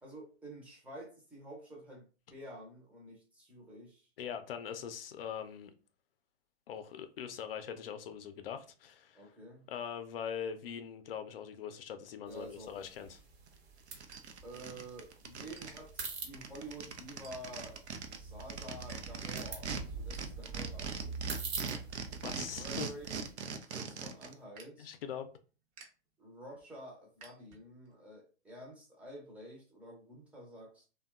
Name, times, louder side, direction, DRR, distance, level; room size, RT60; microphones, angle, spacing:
voice 1, 0.0-4.1 9.1-9.7 12.3-13.1 14.4-21.4 22.4-25.0 26.2-30.8, right 1 dB, 5° right, 0.6 m, -50 dB
voice 2, 4.2-5.7 6.7-9.2 9.7-13.2 22.2-22.9 24.8-25.3, left 8 dB, 55° left, 0.5 m, -42 dB
sound 1, 12.3-23.3, right 4 dB, 60° right, 1.0 m, -45 dB
sound 2, 13.2-15.0 15.5-15.7 16.3-16.5 17.2-17.8 18.2-19.0 19.3-19.4 19.7-20.4 20.8-21.9 22.2-28.0, right 5 dB, 40° right, 0.8 m, -59 dB
sound 3, 13.5-13.6 13.9-15.8 16.0-16.1 16.3-19.8 20.1-24.3, right 6 dB, 80° right, 0.5 m, -40 dB
2.7 x 2.2 x 2.3 m
figure-of-eight pair, 120°, 33 cm